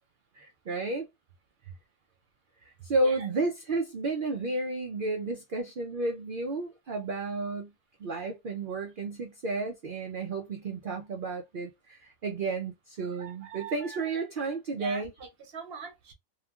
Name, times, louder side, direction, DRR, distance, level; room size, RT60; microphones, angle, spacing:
voice 1, 0.3-1.1 2.6-7.7 8.0-15.1, right 3 dB, 75° right, 0.5 m, -32 dB
voice 2, 13.0-14.1 14.8-16.1, right 6 dB, 50° right, 0.9 m, -43 dB
3.1 x 2.4 x 2.3 m
omnidirectional pair, 1.5 m